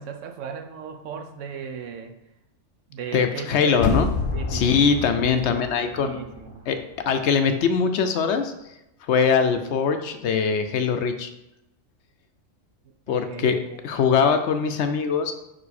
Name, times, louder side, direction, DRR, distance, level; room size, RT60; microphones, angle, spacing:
voice 1, 0.0-2.1 2.9-3.8 4.3-4.8 5.4-6.7 13.1-13.8, right 7 dB, 75° right, 5 dB, 1.0 m, -37 dB
voice 2, 3.1-4.1 4.5-6.2 6.7-6.8 7.1-8.5 9.1-11.3 13.1-13.6 13.8-15.3, left 6 dB, 70° left, 7 dB, 0.8 m, -22 dB
sound 1, 3.7-6.7 7.0-7.1, left 4 dB, 90° left, 1.1 m, -28 dB
5.3 x 4.7 x 4.1 m, 0.88 s
omnidirectional pair, 1.3 m